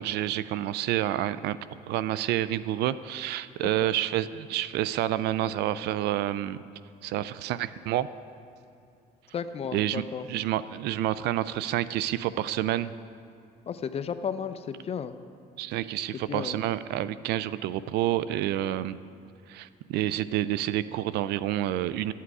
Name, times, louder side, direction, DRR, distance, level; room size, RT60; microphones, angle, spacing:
voice 1, 0.0-1.6 1.9-6.6 7.0-8.1 9.7-12.9 15.6-19.0 19.5-22.1, right 13 dB, 80° right, 16 dB, 0.4 m, -29 dB
voice 2, 9.3-10.3 13.7-15.1 16.3-16.6, left 7 dB, 35° left, 11 dB, 0.5 m, -33 dB
12.5 x 8.4 x 4.8 m, 2.5 s
cardioid pair, 110°, 17 cm